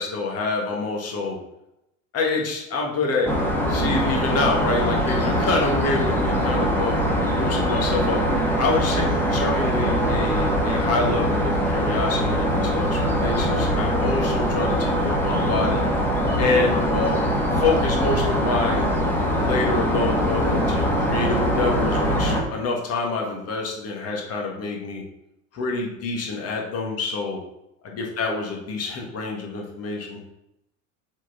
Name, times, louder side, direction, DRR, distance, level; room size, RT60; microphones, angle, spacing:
voice 1, 0.0-1.4 2.1-3.3 3.7-7.0 7.4-8.2 8.6-9.0 9.3-15.8 16.4-17.3 17.6-18.9 19.3-25.0 25.5-27.4 27.8-30.2, left 3 dB, 35° left, 0 dB, 1.7 m, -27 dB
sound 1, 3.3-22.4, equal, 5° left, 1.7 m, -22 dB
7.0 x 4.2 x 4.1 m, 0.87 s
figure-of-eight pair, 70°, 41 cm